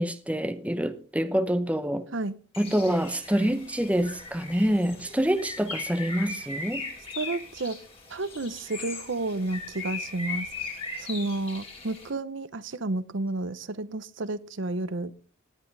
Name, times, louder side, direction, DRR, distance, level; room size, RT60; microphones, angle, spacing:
voice 1, 0.0-2.0 2.6-6.8, equal, 5° right, 0.8 m, -26 dB
Bird, 2.5-12.1, left 3 dB, 30° left, 4.0 m, -39 dB
voice 2, 7.2-7.8 8.1-10.5 11.0-15.1, right 2 dB, 70° right, 0.8 m, -31 dB
18.0 x 10.5 x 3.3 m
head